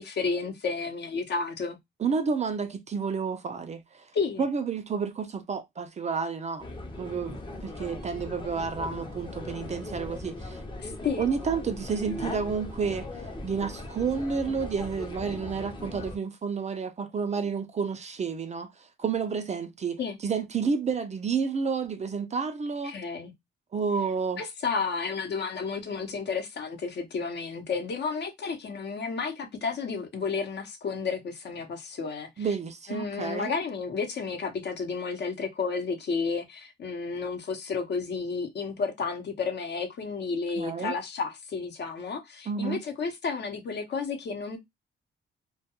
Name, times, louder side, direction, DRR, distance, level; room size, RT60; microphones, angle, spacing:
voice 1, 0.0-1.8 4.1-4.4 10.8-11.2 20.0-20.2 22.8-23.3 24.4-32.5 32.9-44.6, left 5 dB, 55° left, 0.7 m, -32 dB
voice 2, 2.0-4.1 4.4-6.7 7.0-10.6 11.2-22.9 23.7-24.4 32.4-33.5 40.6-40.9 42.5-42.8, right 5 dB, 35° right, 0.4 m, -30 dB
sound 1, 6.6-16.2, left 1 dB, 25° left, 0.6 m, -39 dB
2.3 x 2.2 x 2.8 m
cardioid pair, 100°, 21 cm